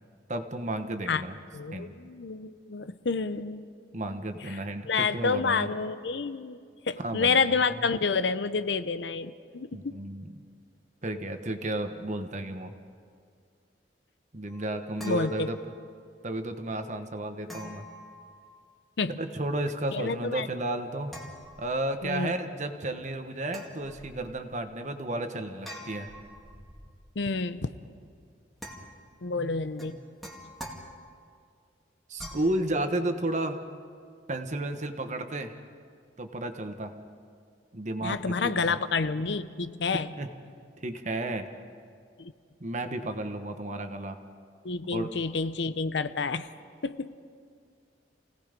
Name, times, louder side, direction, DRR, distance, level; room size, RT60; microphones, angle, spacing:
voice 1, 0.3-1.4 1.7-2.0 3.9-5.7 7.0-7.8 9.7-10.4 11.0-12.8 14.3-15.6 16.2-17.9 19.1-21.1 21.6-26.1 29.3-30.0 32.1-33.6 34.3-35.6 36.2-36.9 37.7-38.8 39.9-40.3 40.8-41.5 42.6-44.2 44.9-45.1, right 1 dB, 40° right, 7 dB, 1.2 m, -33 dB
voice 2, 1.5-3.7 4.9-6.6 6.9-9.9 15.0-15.5 19.0-19.2 19.9-20.5 22.0-22.3 27.2-27.7 29.2-30.0 38.0-40.1 42.2-42.3 44.6-46.5 46.8-47.2, left 4 dB, 70° left, 13 dB, 0.7 m, -29 dB
sound 1, 14.5-16.1 17.5-18.9 21.1-22.1 23.5-24.6 25.6-27.1 28.6-29.2 29.8-31.4 32.2-32.6, equal, ahead, 2.1 m, -46 dB
28.5 x 17.5 x 5.2 m, 2.2 s
head